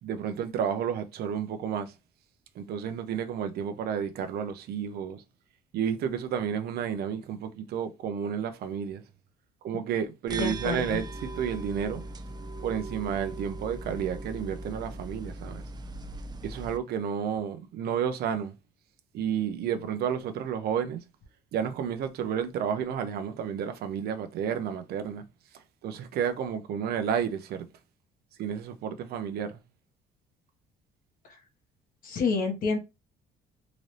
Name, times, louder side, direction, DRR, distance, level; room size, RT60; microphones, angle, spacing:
voice 1, 0.0-1.9 2.5-5.2 5.7-9.0 9.6-12.0 12.6-15.6 16.4-18.5 19.1-21.0 21.5-25.2 25.8-27.7 28.4-29.6, right 8 dB, 70° right, 0.7 m, -31 dB
voice 2, 10.3-11.0 32.0-32.8, left 4 dB, 55° left, 1.4 m, -28 dB
sound 1, 10.3-16.8, right 2 dB, 25° right, 0.5 m, -39 dB
3.9 x 2.7 x 3.3 m
cardioid pair, 110°, 17 cm